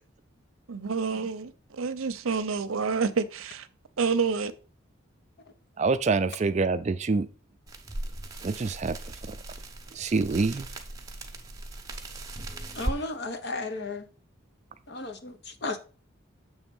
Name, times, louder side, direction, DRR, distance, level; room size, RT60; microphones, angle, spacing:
voice 1, 0.7-3.7 4.0-4.5, right 5 dB, 80° right, 0.6 m, -28 dB
voice 2, 5.8-7.3 8.4-9.0 9.2-9.4 9.9-10.7, right 4 dB, 35° right, 0.4 m, -26 dB
sound 1, 7.7-13.0, right 2 dB, 15° right, 0.8 m, -38 dB
voice 3, 12.8-14.0 14.9-15.4 15.6-15.8, left 2 dB, 55° left, 0.9 m, -33 dB
7.2 x 3.3 x 5.3 m
head